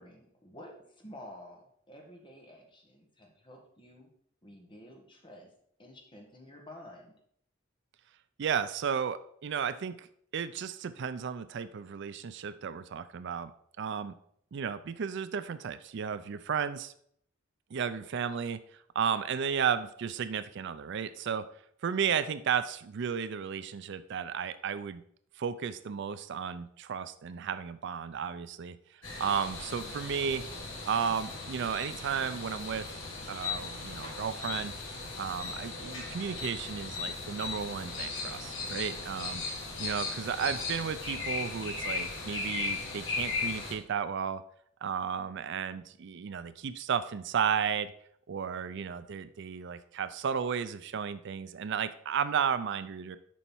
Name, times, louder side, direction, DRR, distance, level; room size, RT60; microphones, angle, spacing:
voice 1, 0.0-4.1 4.4-5.5 5.8-7.2, left 1 dB, 25° left, 2 dB, 1.6 m, -51 dB
voice 2, 8.4-10.1 10.3-13.5 13.8-14.1 14.5-16.9 17.7-18.6 18.9-21.4 21.8-25.0 25.4-28.8 29.2-30.4 30.9-32.9 33.3-34.7 35.2-39.4 39.8-44.4 44.8-47.9 48.3-53.2, right 7 dB, 60° right, 13 dB, 0.4 m, -33 dB
sound 1, 29.0-43.7, left 4 dB, 75° left, 2.4 m, -37 dB
7.1 x 5.6 x 4.4 m, 0.66 s
head